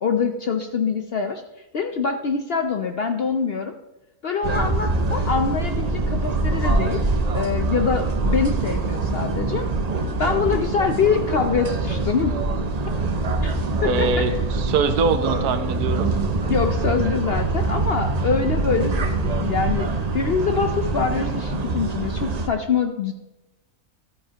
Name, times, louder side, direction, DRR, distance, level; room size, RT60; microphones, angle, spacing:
voice 1, 0.0-1.4 1.7-3.7 4.2-7.0 7.3-9.7 10.2-12.4 13.4-13.5 13.8-14.2 16.4-19.9 20.1-23.1, left 5 dB, 60° left, 6 dB, 0.6 m, -24 dB
sound 1, 4.4-22.5, right 3 dB, 50° right, 0.4 m, -24 dB
voice 2, 13.8-16.1, right 4 dB, 80° right, 9 dB, 1.3 m, -23 dB
13.0 x 9.1 x 2.9 m, 1.0 s
omnidirectional pair, 1.6 m